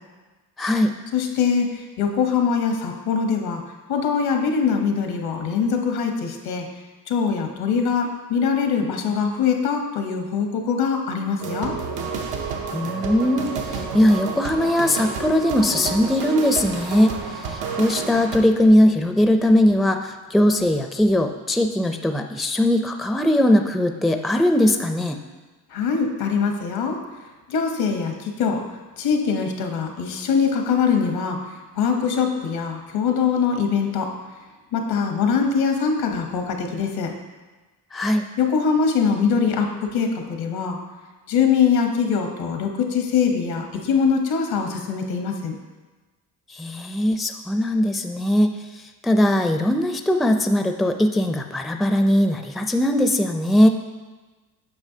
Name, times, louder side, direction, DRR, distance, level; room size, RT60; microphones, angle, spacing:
voice 1, 0.6-0.9 12.7-25.2 37.9-38.2 46.5-53.7, left 1 dB, ahead, 6 dB, 0.4 m, -20 dB
voice 2, 1.1-3.6 3.9-6.7 7.1-11.8 25.7-27.0 27.5-28.6 29.0-31.4 31.7-34.1 34.7-37.1 38.4-40.8 41.3-45.6, left 6 dB, 80° left, 4 dB, 1.1 m, -22 dB
sound 1, 11.4-18.4, right 5 dB, 85° right, 0.8 m, -30 dB
8.4 x 5.7 x 2.8 m, 1.3 s
cardioid pair, 85°, 36 cm